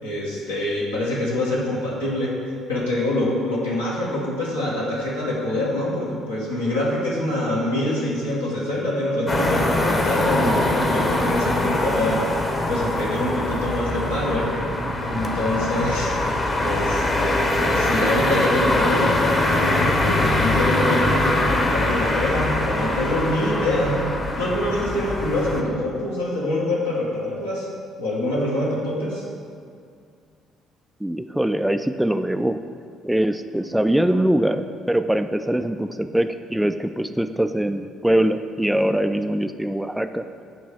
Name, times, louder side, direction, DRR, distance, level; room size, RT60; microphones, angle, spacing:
voice 1, 0.0-2.3 2.7-12.2 12.7-14.5 15.0-16.1 16.6-24.0 24.4-27.7 28.0-29.2, left 1 dB, 80° left, -6 dB, 1.4 m, -25 dB
sound 1, 9.3-25.6, left 1 dB, 30° left, 1.0 m, -23 dB
voice 2, 31.0-32.6 33.0-40.2, right 1 dB, 5° right, 9 dB, 0.3 m, -22 dB
8.5 x 3.1 x 6.3 m, 2.3 s
figure-of-eight pair, 50°, 0 cm